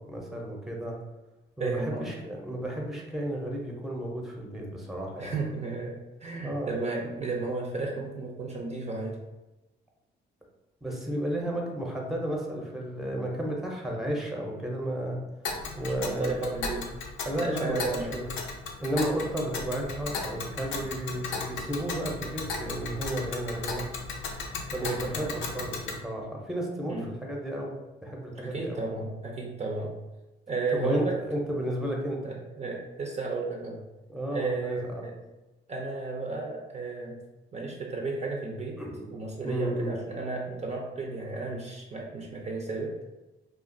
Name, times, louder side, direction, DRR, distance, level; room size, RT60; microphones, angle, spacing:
voice 1, 0.1-1.0 1.6-5.3 6.4-6.7 10.8-15.2 15.7-16.5 17.2-18.3 18.8-23.8 24.7-27.7 28.0-28.8 30.7-32.4 34.1-35.0 38.8-39.1 39.4-39.9, right 1 dB, ahead, -1 dB, 0.7 m, -33 dB
voice 2, 1.6-2.1 5.2-9.2 15.9-16.9 17.4-18.2 24.8-25.3 26.9-27.1 28.4-30.0 30.5-31.2 32.2-33.8 34.3-35.2 35.7-37.2 37.5-38.8 39.1-43.0, right 3 dB, 35° right, -1 dB, 0.6 m, -33 dB
Tick, 15.4-26.0, left 4 dB, 85° left, 0.5 m, -36 dB
2.4 x 2.4 x 3.8 m, 1.1 s
cardioid pair, 90°, 20 cm